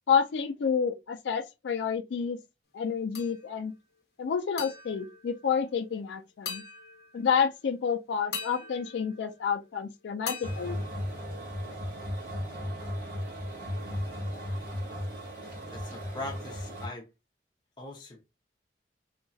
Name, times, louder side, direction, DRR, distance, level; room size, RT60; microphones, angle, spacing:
voice 1, 0.1-2.4 2.7-3.7 4.2-6.6 7.1-10.8, left 6 dB, 90° left, 0.4 m, -29 dB
sound 1, 3.2-3.8 4.6-6.0 6.5-7.5 8.3-9.8 10.3-11.7, left 6 dB, 60° left, 0.7 m, -42 dB
sound 2, 10.4-16.9, equal, 55° right, 1.3 m, -36 dB
voice 2, 15.7-17.1 17.8-18.2, left 2 dB, 25° left, 0.7 m, -41 dB
2.9 x 2.3 x 2.6 m
head